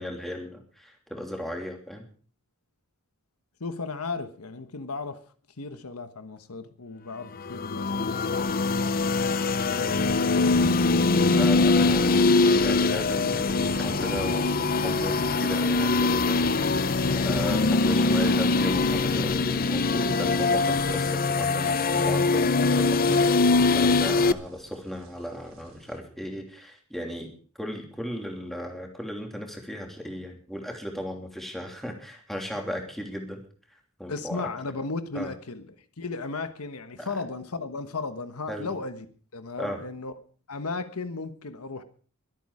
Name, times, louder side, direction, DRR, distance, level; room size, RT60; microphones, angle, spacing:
voice 1, 0.0-2.0 11.3-27.3 27.6-33.4 34.0-34.5 35.1-35.3 37.0-37.1 38.5-38.7 39.6-39.8, equal, ahead, 2 dB, 3.0 m, -36 dB
voice 2, 3.6-5.2 5.6-10.9 34.1-35.7 36.0-39.1 39.3-40.1 40.5-41.8, left 3 dB, 80° left, 10 dB, 1.3 m, -36 dB
sound 1, 7.4-24.3, left 3 dB, 40° left, 0.6 m, -23 dB
sound 2, 9.8-26.0, equal, 65° right, 3.4 m, -42 dB
23.0 x 8.6 x 4.9 m, 0.42 s
head